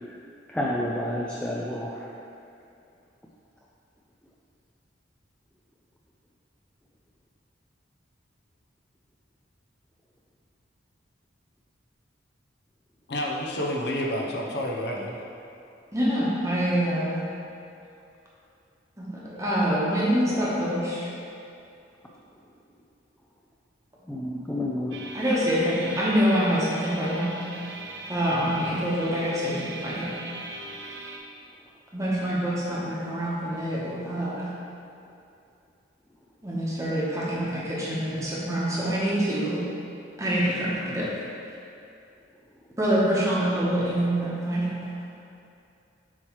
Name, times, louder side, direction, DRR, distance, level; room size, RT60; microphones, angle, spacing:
voice 1, 0.5-2.1 24.1-25.0, left 1 dB, 5° left, -4 dB, 0.3 m, -30 dB
voice 2, 13.1-15.2, equal, 60° left, -2 dB, 0.7 m, -29 dB
voice 3, 15.9-17.2 19.0-21.1 25.1-27.4 28.1-30.1 31.9-34.5 36.4-39.6 40.2-41.1 42.8-44.7, equal, 15° right, -7 dB, 1.1 m, -26 dB
sound 1, 24.9-31.2, right 2 dB, 65° right, 0.6 m, -39 dB
7.2 x 3.1 x 4.6 m, 2.6 s
head